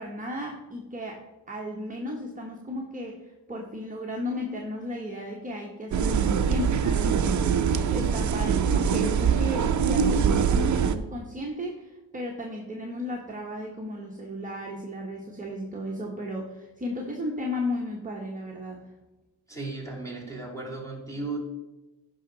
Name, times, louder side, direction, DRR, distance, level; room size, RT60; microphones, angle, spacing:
voice 1, 0.0-18.8, left 1 dB, 20° right, -2 dB, 1.1 m, -35 dB
sound 1, 5.9-10.9, right 7 dB, 45° right, 0.7 m, -23 dB
voice 2, 19.5-21.4, right 3 dB, 5° left, -2 dB, 2.7 m, -35 dB
15.5 x 5.7 x 3.9 m, 1.0 s
wide cardioid pair, 150°, 42 cm